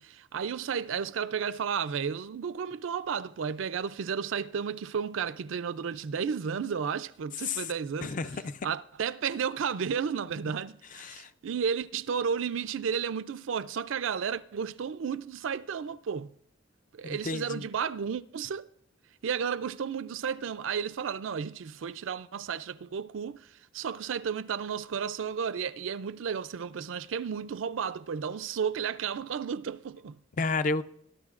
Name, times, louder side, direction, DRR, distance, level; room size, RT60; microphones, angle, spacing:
voice 1, 0.0-8.2 8.6-16.3 16.9-18.7 19.2-30.2, right 7 dB, 75° right, 0.4 m, -33 dB
voice 2, 8.0-8.7 11.0-11.3 17.1-17.6 30.4-30.8, left 3 dB, 40° left, 0.4 m, -31 dB
22.5 x 12.5 x 2.5 m
head